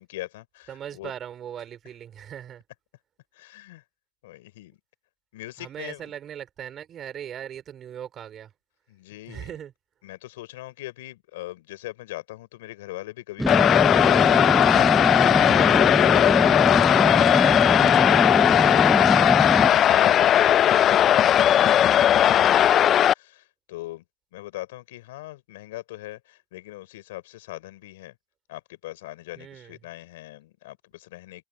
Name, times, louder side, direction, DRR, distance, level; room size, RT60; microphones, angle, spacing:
voice 1, 0.0-1.1 3.3-3.8 4.2-4.8 5.3-6.1 8.9-9.6 10.0-15.0 16.5-24.0 24.3-28.2 28.5-31.4, left 17 dB, 85° left, 4.3 m, -41 dB
voice 2, 0.7-2.6 5.6-8.5 9.3-9.7 29.4-29.8, right 9 dB, 40° right, 4.0 m, -39 dB
sound 1, 13.4-19.7, equal, ahead, 0.7 m, -24 dB
sound 2, 13.5-23.1, left 10 dB, 45° left, 0.3 m, -18 dB
supercardioid pair, 100°, 0 cm